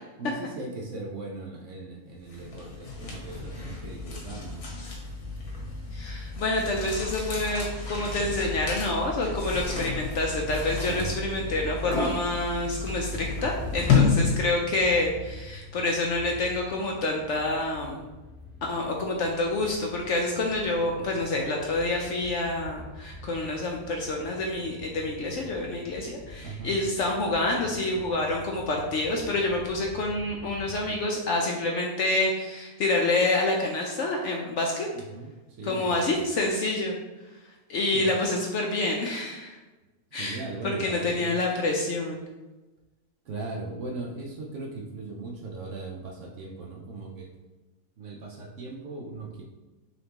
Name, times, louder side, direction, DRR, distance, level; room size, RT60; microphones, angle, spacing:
voice 1, 0.2-4.7 10.9-11.2 14.2-14.4 26.4-26.8 34.9-36.2 37.9-38.0 40.2-41.3 43.2-47.3 48.0-49.4, right 3 dB, 65° right, 0 dB, 0.8 m, -38 dB
sound 1, 2.3-14.7, left 4 dB, 85° left, 1.5 m, -30 dB
voice 2, 5.9-18.1 18.6-34.9 35.6-36.9 37.7-39.6 40.1-42.2, left 2 dB, 65° left, 0 dB, 0.7 m, -27 dB
sound 2, 12.8-30.9, left 2 dB, 10° left, 0.6 m, -44 dB
4.2 x 3.4 x 2.9 m, 1.1 s
omnidirectional pair, 1.6 m